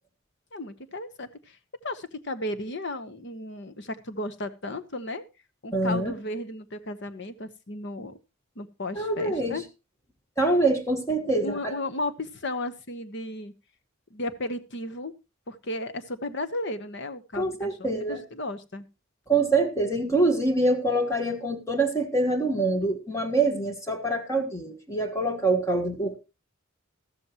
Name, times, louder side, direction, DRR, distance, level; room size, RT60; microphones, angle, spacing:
voice 1, 0.5-1.6 1.8-5.2 5.6-8.2 8.6-9.6 11.4-13.5 14.1-15.1 15.5-18.9, left 1 dB, 55° left, 12 dB, 1.1 m, -34 dB
voice 2, 5.7-6.1 8.9-9.6 10.4-11.7 17.4-18.2 19.3-26.2, right 2 dB, 15° left, 6 dB, 1.5 m, -25 dB
14.0 x 13.0 x 3.0 m, 0.27 s
head